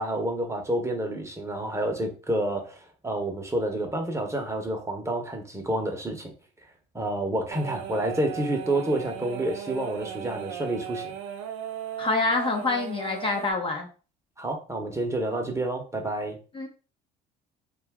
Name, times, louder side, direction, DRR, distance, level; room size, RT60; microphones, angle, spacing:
voice 1, 0.0-6.3 6.9-11.1 14.4-16.4, right 1 dB, 15° right, 0.8 m, -29 dB
sound 1, 7.5-13.5, right 9 dB, 75° right, 0.5 m, -37 dB
voice 2, 12.0-13.9 16.5-16.7, left 3 dB, 25° left, 0.6 m, -26 dB
2.6 x 2.4 x 3.4 m
hypercardioid pair, 75°, 20 cm